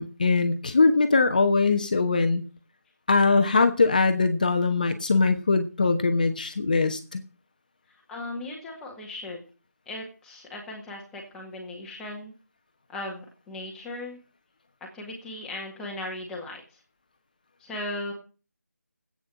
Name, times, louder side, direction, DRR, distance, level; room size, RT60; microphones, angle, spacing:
voice 1, 0.0-2.4 3.1-7.2, left 4 dB, 30° left, 9 dB, 1.1 m, -22 dB
voice 2, 8.1-9.4 9.9-12.3 12.9-14.2 14.9-16.8 17.6-18.1, left 2 dB, 5° left, -1 dB, 1.8 m, -37 dB
15.0 x 8.9 x 7.6 m, 0.36 s
figure-of-eight pair, 170°, 9 cm